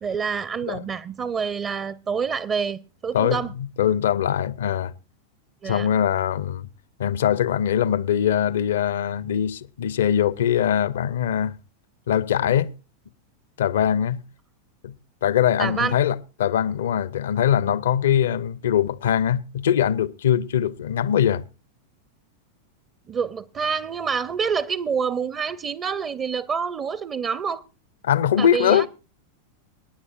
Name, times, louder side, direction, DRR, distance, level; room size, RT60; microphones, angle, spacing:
voice 1, 0.0-3.5 5.6-5.9 15.6-16.0 23.1-27.6 28.4-28.9, right 6 dB, 25° right, 0.5 m, -27 dB
voice 2, 3.1-4.9 5.6-6.7 7.0-11.6 12.1-12.7 13.6-14.2 14.8-14.9 15.2-21.4 28.0-28.9, left 9 dB, 60° left, 0.5 m, -22 dB
26.0 x 9.7 x 2.4 m
figure-of-eight pair, 90°, 0 cm